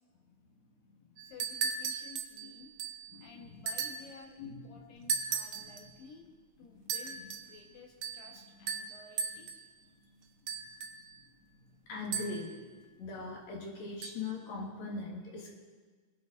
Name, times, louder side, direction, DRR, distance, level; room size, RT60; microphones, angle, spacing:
voice 1, 1.2-2.7 3.2-6.3 6.6-9.5, left 4 dB, 80° left, 0 dB, 3.6 m, -54 dB
sound 1, 1.2-3.1 3.7-4.1 5.1-5.9 6.9-7.5 8.0-8.3 8.7-9.7 10.5-11.2 12.1-12.6 14.0-14.1, right 6 dB, 85° right, 1.3 m, -37 dB
voice 2, 3.1-3.6 4.4-5.1 5.5-5.7 6.7-6.8 11.9-12.6 13.0-15.6, left 3 dB, 55° left, -1 dB, 3.0 m, -41 dB
23.0 x 8.6 x 4.0 m, 1.4 s
omnidirectional pair, 4.0 m